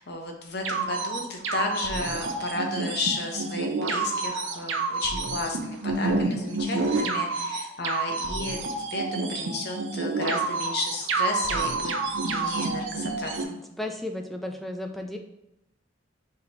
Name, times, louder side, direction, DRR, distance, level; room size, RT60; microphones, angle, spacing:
voice 1, 0.0-9.0 9.3-13.6, left 2 dB, 55° left, 2 dB, 0.8 m, -33 dB
sound 1, 0.6-13.4, right 3 dB, 70° right, 0.5 m, -29 dB
voice 2, 13.8-15.2, left 1 dB, ahead, 2 dB, 0.3 m, -33 dB
5.0 x 2.7 x 2.8 m, 0.89 s
head